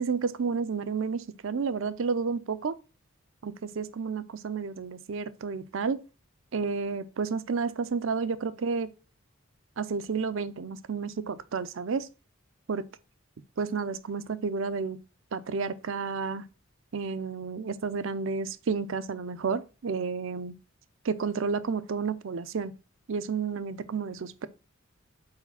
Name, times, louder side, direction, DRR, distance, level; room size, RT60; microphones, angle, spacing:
voice 1, 0.0-2.8 3.4-6.0 6.5-8.9 9.8-12.1 12.7-12.8 13.6-15.0 15.3-16.4 16.9-20.5 21.0-22.7 23.1-24.5, right 5 dB, 65° right, 0.5 m, -31 dB
4.9 x 4.2 x 5.5 m
head